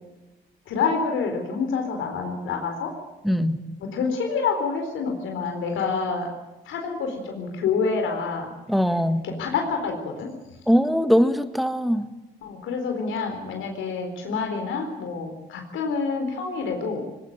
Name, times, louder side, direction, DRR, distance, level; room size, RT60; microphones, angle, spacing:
voice 1, 0.7-2.9 3.9-6.3 6.7-8.5 9.2-10.3 12.4-17.0, left 5 dB, 85° left, 3 dB, 4.1 m, -27 dB
voice 2, 3.2-3.6 8.7-9.3 10.7-12.1, equal, ahead, 10 dB, 1.7 m, -21 dB
20.0 x 19.0 x 8.9 m, 1.1 s
cardioid pair, 90°, 20 cm